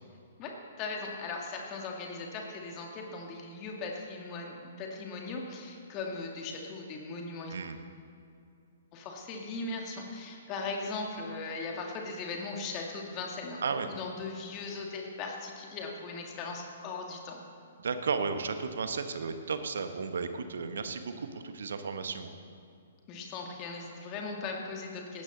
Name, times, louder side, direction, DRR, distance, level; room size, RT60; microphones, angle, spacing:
voice 1, 0.4-7.5 8.9-17.4 23.1-25.2, left 3 dB, 30° left, 1 dB, 2.2 m, -38 dB
voice 2, 17.8-22.3, right 5 dB, 60° right, 8 dB, 1.4 m, -34 dB
19.5 x 15.5 x 4.1 m, 2.5 s
figure-of-eight pair, 120°, 0 cm